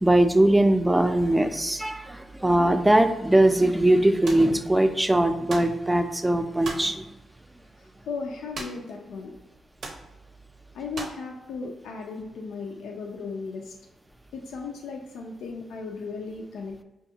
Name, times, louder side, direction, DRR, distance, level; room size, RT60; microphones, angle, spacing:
voice 1, 0.0-7.0, right 1 dB, 15° right, 7 dB, 0.5 m, -21 dB
sound 1, 4.2-4.5 5.5-5.8 6.6-6.9 8.5-8.9 9.2-9.3 9.8-10.1 10.9-11.2, right 3 dB, 70° right, 0.7 m, -37 dB
voice 2, 7.8-9.3 10.7-13.7 14.3-16.8, left 4 dB, 80° left, 1 dB, 0.4 m, -36 dB
5.2 x 2.2 x 2.8 m, 1.0 s
supercardioid pair, 45°, 0 cm